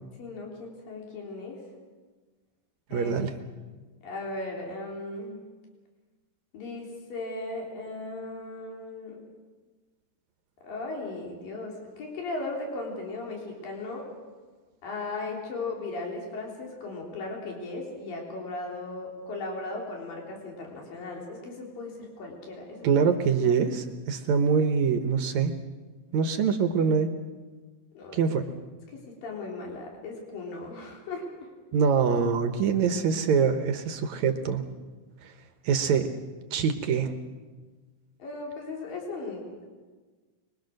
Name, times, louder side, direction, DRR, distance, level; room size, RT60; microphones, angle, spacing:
voice 1, 0.2-1.6 2.9-3.1 4.0-5.4 6.5-9.2 10.6-14.1 14.8-23.0 23.4-23.6 28.0-28.3 28.9-31.3 38.2-39.7, left 2 dB, 75° left, -1 dB, 5.2 m, -37 dB
voice 2, 2.9-3.3 22.8-25.5 26.1-27.1 28.1-28.4 31.7-34.6 35.7-36.1 36.5-37.1, right 6 dB, 65° right, 7 dB, 2.0 m, -24 dB
24.0 x 22.0 x 6.5 m, 1.4 s
omnidirectional pair, 4.1 m